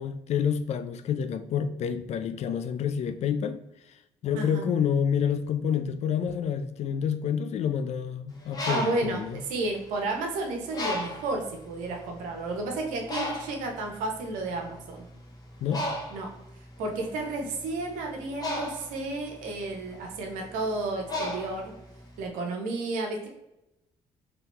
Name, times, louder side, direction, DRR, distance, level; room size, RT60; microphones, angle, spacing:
voice 1, 0.0-3.6 4.2-9.4 15.6-15.8, left 7 dB, 55° left, 0.4 m, -28 dB
voice 2, 4.3-4.6 8.7-15.1 16.1-16.3 16.8-21.7 22.2-23.3, right 2 dB, 80° right, 0.8 m, -32 dB
Bird, 8.3-10.2 10.7-11.4 12.1-12.2 12.5-22.2, left 1 dB, 30° left, 1.2 m, -35 dB
3.0 x 2.9 x 3.2 m
supercardioid pair, 60°, 13 cm